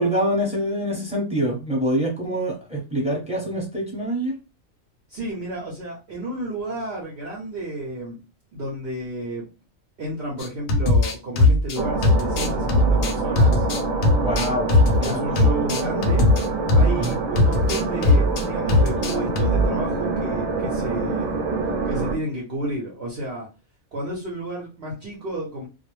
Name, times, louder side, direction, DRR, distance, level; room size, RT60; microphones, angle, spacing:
voice 1, 0.0-4.3 14.2-15.2 17.0-17.1, equal, 5° right, -4 dB, 0.8 m, -25 dB
voice 2, 5.1-8.2 8.5-9.5 10.0-13.7 15.0-16.3 16.7-21.4 21.8-23.5 23.9-25.7, right 1 dB, 55° right, -4 dB, 0.8 m, -31 dB
sound 1, 10.4-17.1 17.4-18.4 18.7-19.7, left 2 dB, 80° left, 1.0 m, -19 dB
sound 2, 11.8-22.2, right 3 dB, 80° right, 1.0 m, -26 dB
2.4 x 2.0 x 3.0 m, 0.31 s
omnidirectional pair, 1.4 m